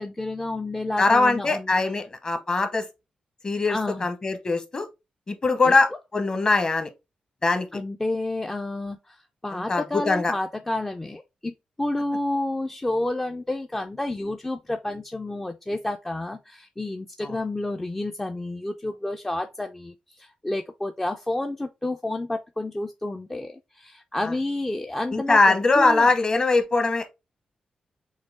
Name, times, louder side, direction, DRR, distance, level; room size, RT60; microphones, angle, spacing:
voice 1, 0.0-2.1 3.7-4.1 5.6-5.7 7.7-9.2 9.4-26.1, left 2 dB, 15° left, 0.4 m, -30 dB
voice 2, 1.0-2.9 3.4-4.9 5.3-6.9 7.4-7.7 9.5-10.3 17.2-17.4 24.2-24.3 25.1-27.1, left 3 dB, 35° left, 1.0 m, -22 dB
6.2 x 2.3 x 3.4 m
wide cardioid pair, 125°, 3 cm